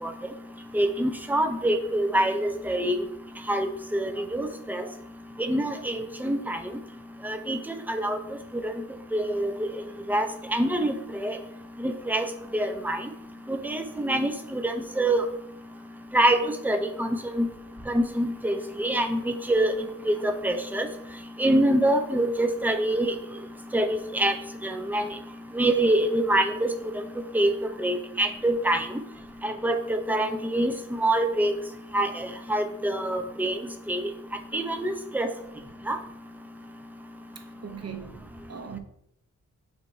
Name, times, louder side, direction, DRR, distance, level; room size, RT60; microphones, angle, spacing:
voice 1, 0.7-2.9 3.5-3.7 3.9-4.8 5.4-6.6 7.2-7.6 7.9-8.2 9.1-9.5 10.1-10.9 11.2-11.4 11.8-12.3 12.5-13.0 13.6-15.2 16.1-16.4 16.6-17.1 17.4-17.5 17.9-19.7 20.1-20.9 21.4-23.1 23.7-24.3 24.6-25.1 25.5-26.7 27.3-27.5 27.8-28.9 29.4-31.5 31.9-33.6 33.9-34.0 34.5-35.3 35.9-36.0, right 1 dB, 5° right, 0.7 m, -25 dB
voice 2, 37.4-38.8, right 7 dB, 55° right, 0.8 m, -40 dB
7.8 x 2.9 x 4.3 m
wide cardioid pair, 80°, 31 cm